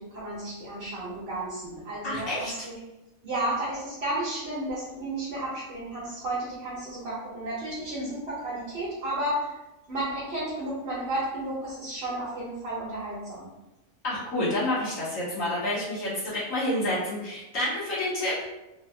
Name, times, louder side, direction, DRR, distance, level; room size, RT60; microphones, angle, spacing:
voice 1, 0.0-2.7 3.2-9.6 9.9-13.5, right 1 dB, 55° right, -8 dB, 1.1 m, -32 dB
voice 2, 2.0-2.5 14.0-18.5, left 1 dB, 75° left, -8 dB, 1.7 m, -29 dB
3.3 x 2.7 x 2.6 m, 0.99 s
omnidirectional pair, 1.4 m